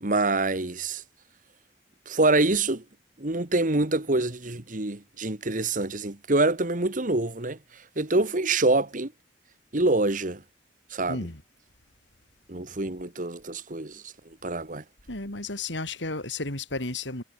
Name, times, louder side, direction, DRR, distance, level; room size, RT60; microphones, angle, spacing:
voice 1, 0.0-1.0 2.1-2.8 3.2-9.1 9.7-10.4 10.9-11.2 12.5-14.1 14.4-14.8, right 2 dB, 45° right, 1.8 m, -26 dB
voice 2, 11.1-11.4 15.1-17.2, left 3 dB, 90° left, 5.0 m, -33 dB
head